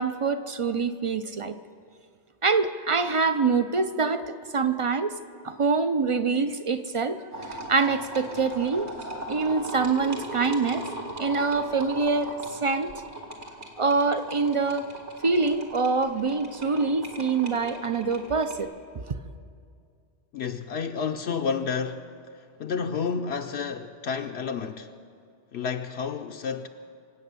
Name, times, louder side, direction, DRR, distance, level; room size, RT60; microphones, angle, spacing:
voice 1, 0.0-1.6 2.4-5.1 5.4-7.2 7.5-8.9 9.3-10.9 11.2-12.9 13.8-14.9 15.2-18.7 19.1-19.2, right 4 dB, 45° right, 0.4 m, -25 dB
sound 1, 7.3-18.6, right 1 dB, 70° right, 2.3 m, -38 dB
voice 2, 20.3-22.1 22.6-24.9 25.5-26.7, left 6 dB, 70° left, 0.8 m, -30 dB
24.5 x 8.6 x 6.8 m
omnidirectional pair, 1.2 m